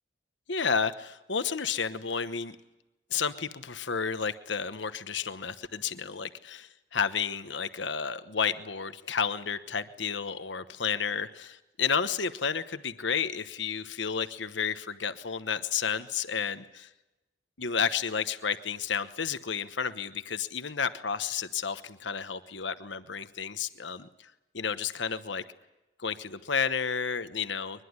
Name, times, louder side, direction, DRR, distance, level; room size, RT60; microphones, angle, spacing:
voice 1, 0.5-2.6 3.1-16.9 17.6-24.1 24.5-25.4 26.0-27.8, left 6 dB, 70° left, 11 dB, 1.1 m, -31 dB
23.0 x 21.5 x 9.6 m, 0.99 s
head